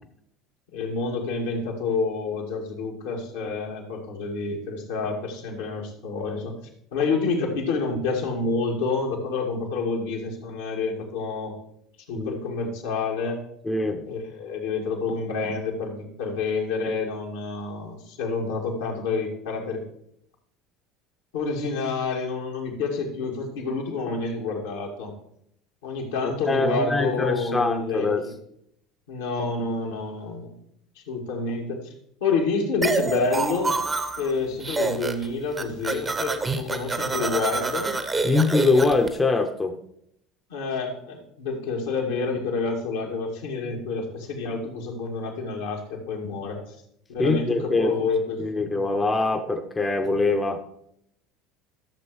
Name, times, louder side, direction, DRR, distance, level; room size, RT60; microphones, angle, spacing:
voice 1, 0.7-6.6 6.9-11.5 12.1-13.4 14.0-19.8 21.3-25.1 25.8-28.3 29.1-30.5 31.0-31.9 32.2-33.7 34.2-37.9 40.5-46.6 47.1-48.7, left 4 dB, 75° left, -1 dB, 2.2 m, -28 dB
voice 2, 13.6-14.0 26.5-28.2 38.2-39.7 47.2-48.0 48.4-50.6, left 3 dB, 20° left, 5 dB, 0.9 m, -23 dB
sound 1, 32.8-34.3 34.6-35.3 35.5-39.1, right 3 dB, 20° right, 0.9 m, -27 dB
13.5 x 6.9 x 3.2 m, 0.74 s
figure-of-eight pair, 70°, 0 cm